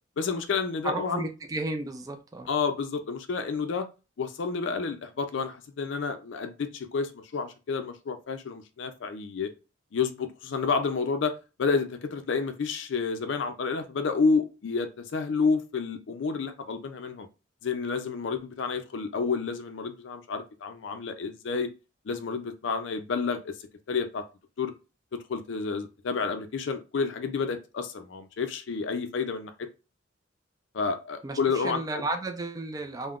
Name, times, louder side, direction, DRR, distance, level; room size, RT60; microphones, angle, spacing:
voice 1, 0.2-1.3 2.5-3.9 4.2-9.5 9.9-11.3 11.6-17.3 17.6-21.7 22.1-23.6 23.9-24.2 24.6-24.7 25.1-29.7 30.7-32.1, left 5 dB, 70° left, 0.4 m, -30 dB
voice 2, 0.8-2.5 31.2-33.2, right 2 dB, 20° right, 0.3 m, -33 dB
3.5 x 2.1 x 2.3 m
head